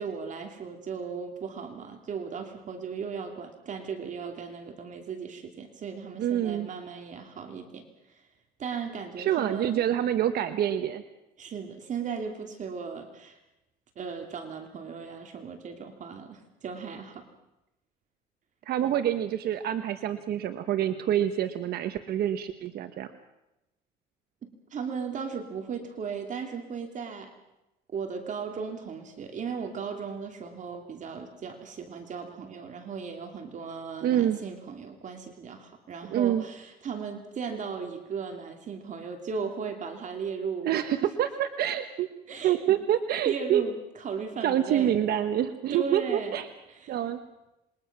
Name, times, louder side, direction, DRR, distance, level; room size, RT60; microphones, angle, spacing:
voice 1, 0.0-8.2 8.6-9.8 11.4-13.4 14.0-17.3 24.4-27.3 27.9-40.7 42.3-42.6 43.2-44.9 45.7-46.4 46.7-47.0, right 6 dB, 45° right, 5 dB, 2.8 m, -37 dB
voice 2, 6.2-6.7 9.2-11.0 18.7-23.1 34.0-34.4 36.1-36.4 40.6-42.1 42.4-43.6 44.4-46.5 46.9-47.2, right 11 dB, 65° right, 9 dB, 1.2 m, -26 dB
27.0 x 22.0 x 6.0 m, 0.94 s
cardioid pair, 110°, 17 cm